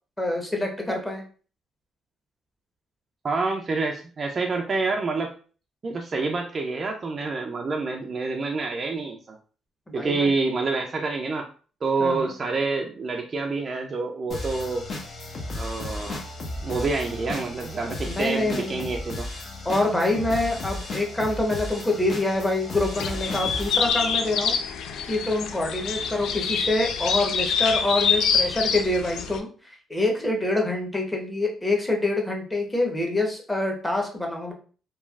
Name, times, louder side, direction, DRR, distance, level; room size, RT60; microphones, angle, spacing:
voice 1, 0.2-1.2 9.9-10.3 12.0-12.3 18.1-18.9 19.6-24.6 25.1-29.5 29.9-34.5, left 2 dB, 10° left, 1 dB, 0.9 m, -26 dB
voice 2, 3.2-5.3 5.8-9.4 9.9-11.5 11.8-14.8 15.5-16.2 16.6-19.3, right 3 dB, 40° right, 2 dB, 0.4 m, -27 dB
sound 1, 14.3-23.9, left 2 dB, 50° left, 0.7 m, -35 dB
sound 2, 22.9-29.4, left 6 dB, 80° left, 0.3 m, -26 dB
3.1 x 2.3 x 2.3 m, 0.39 s
cardioid pair, 90°, 0 cm